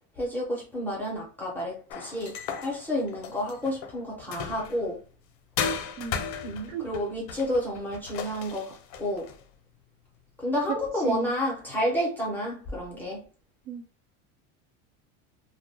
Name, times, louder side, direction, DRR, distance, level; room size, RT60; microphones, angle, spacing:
voice 1, 0.2-2.4 2.6-5.0 6.4-9.3 10.4-13.2, equal, 5° left, 0.4 m, -30 dB
sound 1, 1.9-4.9 5.6-9.4, left 6 dB, 60° left, 0.6 m, -36 dB
voice 2, 6.0-6.3 6.7-6.8 11.0-11.3 13.7-13.8, right 6 dB, 85° right, 0.8 m, -34 dB
2.2 x 2.0 x 3.2 m
cardioid pair, 165°, 38 cm